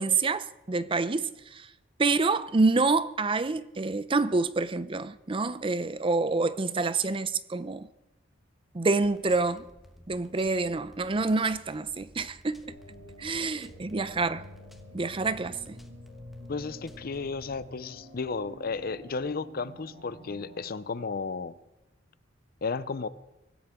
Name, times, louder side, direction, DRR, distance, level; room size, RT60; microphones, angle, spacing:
voice 1, 0.0-1.7 2.0-7.9 8.7-9.7 10.1-12.8 13.2-14.4 14.9-15.8, right 3 dB, 30° right, 0.5 m, -27 dB
sound 1, 9.0-17.7, left 1 dB, ahead, 1.3 m, -55 dB
sound 2, 12.7-20.7, left 1 dB, 65° right, 7.2 m, -48 dB
voice 2, 16.5-21.6 22.6-23.1, left 4 dB, 50° left, 0.6 m, -33 dB
24.5 x 15.5 x 3.7 m
head